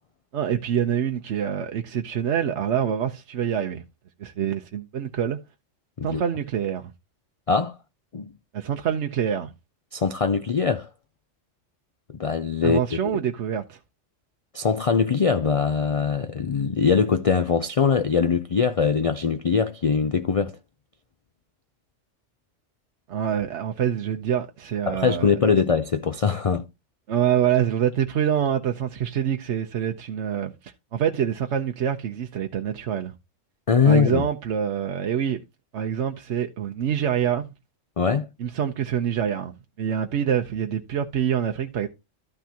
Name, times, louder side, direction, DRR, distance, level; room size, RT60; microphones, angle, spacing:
voice 1, 0.3-3.8 4.2-5.4 6.0-6.9 8.5-9.5 12.6-13.8 23.1-25.6 27.1-33.1 33.8-35.4 35.7-37.5 38.4-41.9, right 9 dB, 70° right, 1.0 m, -26 dB
voice 2, 9.9-10.9 12.2-12.8 14.5-20.6 24.9-26.6 33.7-34.3 38.0-38.3, left 5 dB, 60° left, 0.3 m, -22 dB
13.0 x 5.9 x 2.8 m
omnidirectional pair, 1.3 m